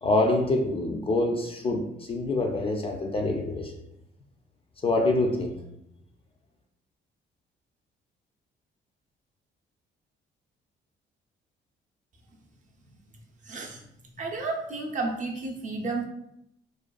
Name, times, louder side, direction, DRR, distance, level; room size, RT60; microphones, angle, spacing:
voice 1, 0.0-3.7 4.8-5.6, left 2 dB, 30° left, 3 dB, 0.3 m, -26 dB
voice 2, 13.4-13.8 14.2-16.1, right 3 dB, 40° right, 0 dB, 0.5 m, -32 dB
2.4 x 2.2 x 2.3 m, 0.81 s
cardioid pair, 90°, 20 cm